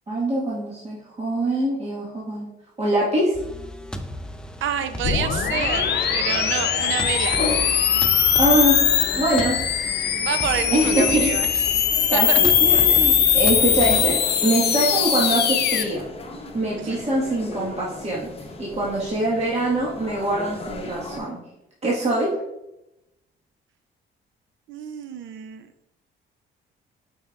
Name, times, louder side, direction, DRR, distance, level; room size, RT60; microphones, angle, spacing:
voice 1, 0.1-2.5 2.8-3.3 8.4-8.8 9.1-9.6 10.7-11.3 12.1-16.0 16.5-18.3 18.6-21.4 21.8-22.3, right 1 dB, 35° right, -6 dB, 1.5 m, -23 dB
sound 1, 3.3-14.0, left 1 dB, 5° left, 0.5 m, -35 dB
voice 2, 4.6-7.7 10.2-11.8 12.1-12.6 12.8-12.9 16.8-17.0 24.7-25.7, right 8 dB, 75° right, 10 dB, 0.5 m, -29 dB
sound 2, 5.0-15.8, left 8 dB, 55° left, 0.6 m, -21 dB
sound 3, 5.7-21.2, left 2 dB, 30° left, 0.9 m, -37 dB
7.9 x 4.9 x 2.4 m, 0.90 s
cardioid pair, 90°, 20 cm